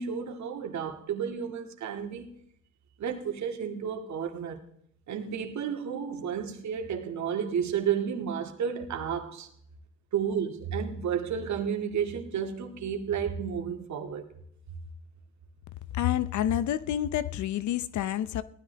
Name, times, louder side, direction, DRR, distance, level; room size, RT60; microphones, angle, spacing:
voice 1, 0.0-2.4 3.0-4.6 5.1-9.5 10.1-14.3, right 7 dB, 70° right, 2.3 m, -32 dB
voice 2, 15.9-18.4, left 11 dB, 70° left, 0.7 m, -28 dB
18.0 x 13.0 x 3.5 m
cardioid pair, 90°, 30 cm